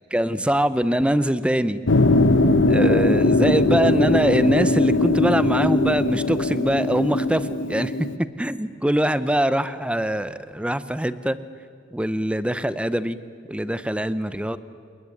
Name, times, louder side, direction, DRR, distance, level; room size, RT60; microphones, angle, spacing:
voice 1, 0.1-1.8 2.7-11.4 11.9-13.2 13.5-14.6, right 1 dB, 5° right, 14 dB, 0.7 m, -23 dB
sound 1, 1.9-8.2, left 2 dB, 65° left, 1.1 m, -20 dB
28.0 x 21.0 x 9.7 m, 2.1 s
head